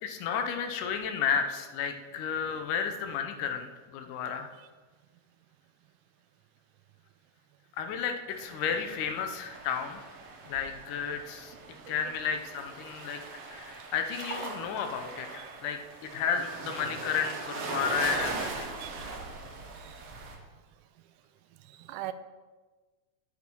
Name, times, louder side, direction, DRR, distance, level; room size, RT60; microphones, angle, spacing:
voice 1, 0.0-4.5 7.7-10.1 10.5-11.5 11.9-13.2 13.5-18.7, left 7 dB, 85° left, 6 dB, 2.4 m, -32 dB
sound 1, 8.3-20.4, right 3 dB, 55° right, 2.0 m, -40 dB
voice 2, 21.6-22.1, right 14 dB, 90° right, 13 dB, 2.1 m, -42 dB
8.3 x 8.2 x 4.5 m, 1.3 s
omnidirectional pair, 3.6 m